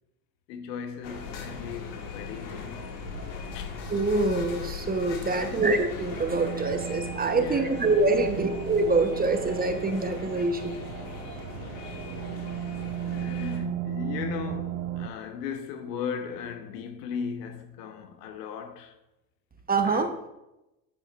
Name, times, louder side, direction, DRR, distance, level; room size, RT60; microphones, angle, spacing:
voice 1, 0.5-2.9 3.5-3.8 5.3-5.7 7.3-7.8 8.2-8.5 13.1-19.0 19.8-20.2, left 7 dB, 75° left, 1.2 m, -37 dB
sound 1, 1.0-13.6, left 5 dB, 60° left, 2.3 m, -39 dB
voice 2, 3.9-10.7 19.7-20.1, right 3 dB, 20° right, 0.9 m, -25 dB
sound 2, 6.3-15.1, right 12 dB, 80° right, 0.7 m, -36 dB
9.5 x 8.4 x 2.5 m
hypercardioid pair, 85°, 48 cm